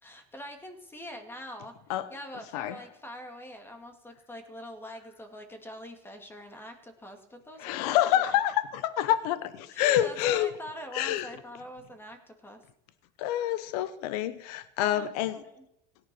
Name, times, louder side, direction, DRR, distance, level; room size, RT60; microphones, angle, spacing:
voice 1, 0.0-1.7 2.1-8.2 9.7-12.6 14.8-15.5, equal, 10° left, 6 dB, 2.1 m, -44 dB
voice 2, 7.6-10.5 10.9-11.3 13.2-15.4, left 12 dB, 80° left, 14 dB, 0.9 m, -27 dB
17.0 x 9.9 x 6.1 m, 0.80 s
supercardioid pair, 125°, 20 cm